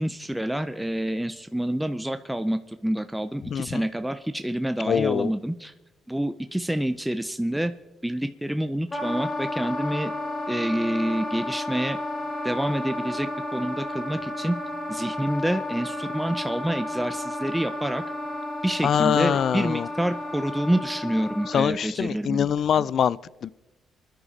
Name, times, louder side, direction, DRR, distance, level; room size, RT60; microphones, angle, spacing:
voice 1, 0.0-5.7 6.1-7.7 8.0-10.1 10.5-12.0 12.4-14.6 14.9-18.0 18.6-22.5, right 1 dB, 5° right, 0.6 m, -27 dB
voice 2, 3.4-3.8 4.8-5.3 18.8-19.9 21.5-23.5, left 8 dB, 60° left, 0.4 m, -24 dB
Wind instrument woodwind instrument, 8.9-21.8, left 1 dB, 25° left, 2.9 m, -32 dB
25.0 x 10.0 x 4.1 m
cardioid pair, 90°, 0 cm